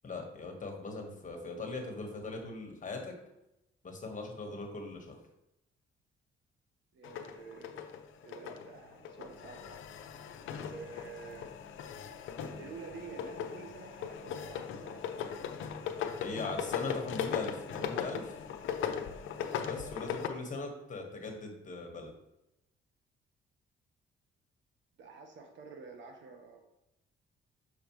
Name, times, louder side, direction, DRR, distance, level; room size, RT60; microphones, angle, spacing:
voice 1, 0.0-3.1 3.8-5.2 16.2-18.3 19.7-22.1, left 3 dB, 40° left, 2 dB, 1.5 m, -40 dB
voice 2, 6.9-7.9 8.2-9.9 10.5-11.5 12.4-15.7 25.0-26.6, right 4 dB, 70° right, 3 dB, 1.2 m, -49 dB
sound 1, 7.0-20.3, left 8 dB, 80° left, 0.6 m, -38 dB
6.9 x 4.8 x 3.1 m, 0.87 s
cardioid pair, 90°, 20 cm